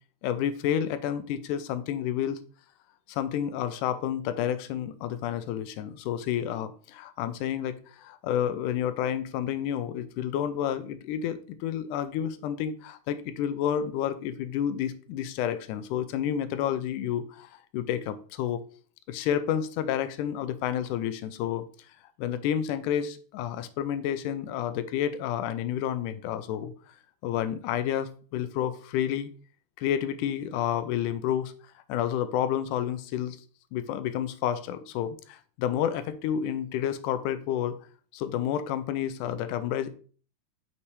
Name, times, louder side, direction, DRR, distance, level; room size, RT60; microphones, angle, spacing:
voice 1, 0.2-2.4 3.1-18.6 19.1-21.7 22.2-26.7 27.2-29.3 29.8-31.5 31.9-33.4 33.7-37.8 38.1-39.9, left 10 dB, 90° left, 12 dB, 2.1 m, -30 dB
6.5 x 5.8 x 3.2 m, 0.42 s
omnidirectional pair, 3.5 m